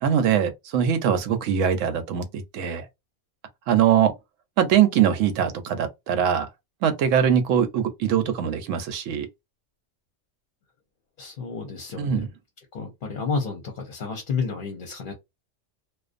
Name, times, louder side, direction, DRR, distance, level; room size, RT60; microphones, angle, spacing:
voice 1, 0.0-2.8 3.7-4.1 4.6-6.5 6.8-9.3 12.0-12.3, right 9 dB, 90° right, 1.0 m, -22 dB
voice 2, 11.2-12.3 12.7-15.1, left 4 dB, 50° left, 0.7 m, -31 dB
2.5 x 2.1 x 2.4 m
omnidirectional pair, 1.3 m